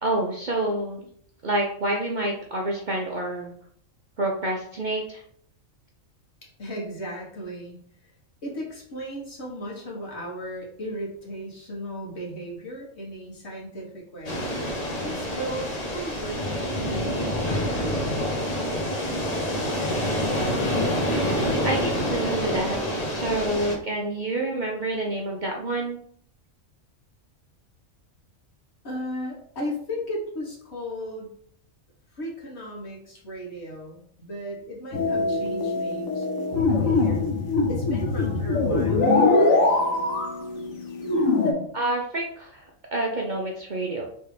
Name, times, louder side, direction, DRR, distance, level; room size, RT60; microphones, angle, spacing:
voice 1, 0.0-1.1 1.4-3.5 4.2-5.2 21.3-22.8 23.1-26.0 41.7-44.0, right 2 dB, 50° right, -1 dB, 0.6 m, -28 dB
voice 2, 6.4-7.8 8.4-14.4 15.0-18.1 28.8-31.3 32.1-37.3 37.6-39.1, equal, 55° left, -3 dB, 1.6 m, -36 dB
sound 1, 14.2-23.7, equal, 35° left, 1.0 m, -27 dB
sound 2, 34.9-41.5, left 3 dB, 85° left, 1.3 m, -22 dB
3.4 x 3.3 x 4.8 m, 0.62 s
omnidirectional pair, 1.3 m